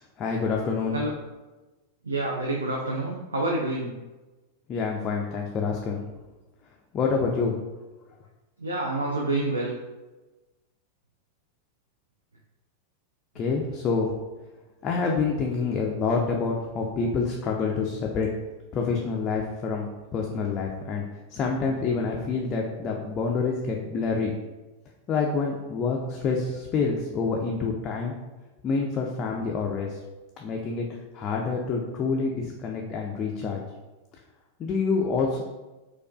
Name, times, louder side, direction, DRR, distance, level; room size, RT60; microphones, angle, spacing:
voice 1, 0.2-1.0 4.7-6.1 6.9-7.6 13.4-14.1 14.8-18.3 18.7-21.0 21.3-24.3 25.1-28.1 28.6-30.0 30.4-30.9 31.1-33.6 34.6-35.4, left 4 dB, 30° left, -1 dB, 0.4 m, -27 dB
voice 2, 2.0-3.9 8.6-9.7, right 2 dB, 75° right, -1 dB, 0.4 m, -28 dB
4.3 x 2.3 x 2.3 m, 1.1 s
figure-of-eight pair, 90°, 0 cm